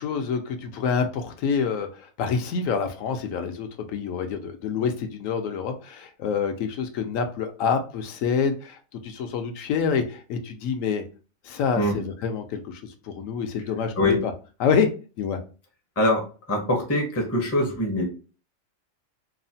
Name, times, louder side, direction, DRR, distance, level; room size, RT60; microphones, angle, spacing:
voice 1, 0.0-11.0 11.4-14.2 14.6-14.9 15.2-15.4, left 6 dB, 75° left, 6 dB, 0.9 m, -27 dB
voice 2, 16.0-18.0, left 1 dB, 20° left, 0 dB, 0.4 m, -23 dB
3.0 x 2.1 x 2.6 m, 0.35 s
omnidirectional pair, 1.4 m